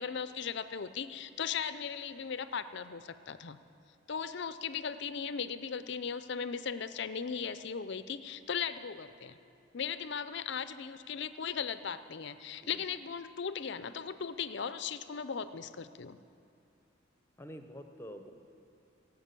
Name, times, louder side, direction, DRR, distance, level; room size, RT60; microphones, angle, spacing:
voice 1, 0.0-3.6 4.1-9.4 9.7-16.2, left 6 dB, 55° left, 13 dB, 0.5 m, -37 dB
voice 2, 17.4-18.3, equal, 10° left, 7 dB, 0.7 m, -47 dB
16.5 x 8.2 x 8.3 m, 2.6 s
head